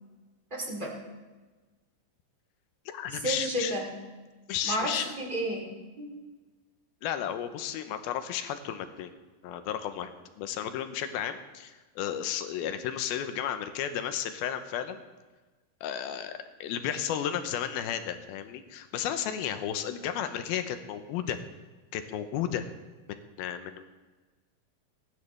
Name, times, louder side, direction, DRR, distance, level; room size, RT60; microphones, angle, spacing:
voice 1, 0.5-0.9 3.1-3.9 4.6-6.1, right 1 dB, 15° right, -1 dB, 1.9 m, -32 dB
voice 2, 2.9-3.7 4.5-5.1 7.0-9.1 9.4-10.1 10.4-15.0 15.8-21.4 21.9-22.6 23.1-23.8, left 9 dB, 80° left, 9 dB, 2.7 m, -33 dB
22.5 x 11.0 x 3.3 m, 1.3 s
omnidirectional pair, 4.4 m